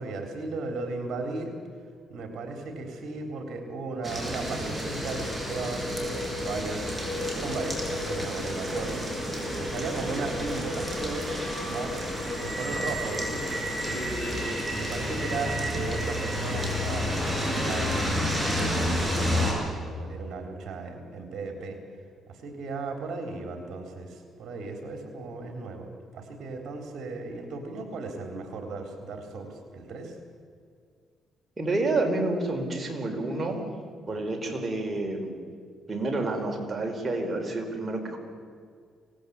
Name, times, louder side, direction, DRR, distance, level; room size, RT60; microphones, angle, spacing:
voice 1, 0.0-1.5 2.1-6.2 6.4-9.1 9.6-11.3 11.6-12.0 12.4-19.1 19.5-21.8 22.3-30.2 34.1-34.2, right 3 dB, 60° right, 4 dB, 3.9 m, -36 dB
sound 1, 4.0-19.5, equal, 5° right, 7.6 m, -30 dB
voice 2, 31.6-33.7 34.1-35.4 35.9-38.2, right 2 dB, 30° right, 3 dB, 4.7 m, -29 dB
25.5 x 18.5 x 8.5 m, 2.1 s
cardioid pair, 90°, 0 cm